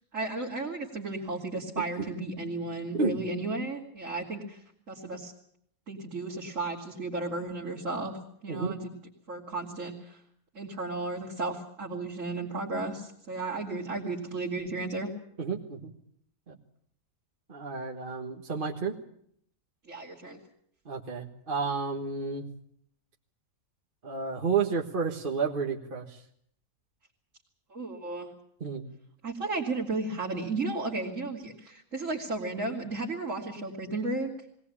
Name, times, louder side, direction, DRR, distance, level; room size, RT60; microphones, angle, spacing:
voice 1, 0.1-5.3 5.9-8.2 8.4-8.8 9.3-10.2 10.5-15.1 19.8-20.4 27.7-28.3 29.2-34.3, right 3 dB, 55° right, -4 dB, 3.1 m, -34 dB
voice 2, 15.4-15.9 16.5-16.6 17.5-19.0 20.9-22.5 24.0-26.2 28.6-28.9, right 5 dB, 35° right, 0 dB, 1.6 m, -31 dB
21.0 x 18.5 x 8.5 m, 0.67 s
omnidirectional pair, 1.5 m